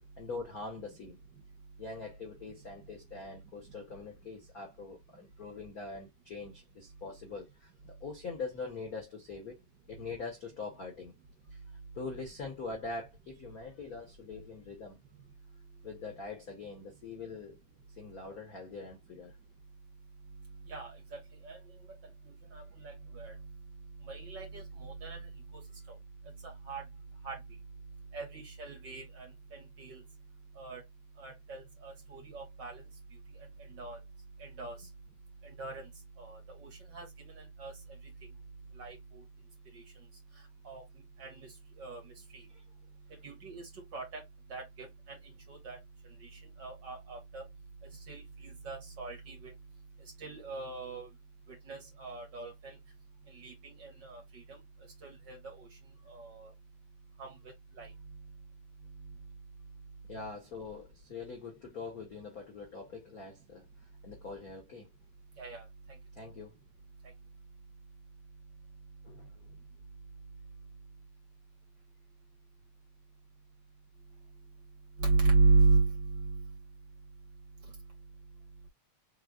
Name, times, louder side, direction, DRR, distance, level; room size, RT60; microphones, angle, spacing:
voice 1, 0.2-1.2 1.8-9.6 9.9-11.1 11.5-11.6 11.9-15.0 15.8-17.6 18.0-19.4 42.5-42.6 60.1-63.7 64.0-64.9 66.2-66.6 69.0-69.6, left 4 dB, 75° left, 0.8 m, -43 dB
voice 2, 20.7-21.6 22.5-23.3 24.0-25.3 26.7-26.8 27.2-27.4 28.1-30.0 30.6-30.8 31.2-32.8 33.7-34.0 34.4-34.8 35.4-35.9 36.2-37.7 38.8-39.2 39.7-39.8 40.6-40.8 41.2-41.5 41.8-42.4 43.2-44.2 44.5-45.2 45.5-45.8 46.2-46.3 46.6-47.4 48.1-49.5 50.2-51.1 51.7-52.8 53.3-54.6 55.0-55.7 56.1-56.5 57.2-57.4 57.8-57.9 65.4-65.6 75.0-76.5, right 4 dB, 40° right, 2.0 m, -34 dB
4.8 x 3.6 x 2.4 m
omnidirectional pair, 3.5 m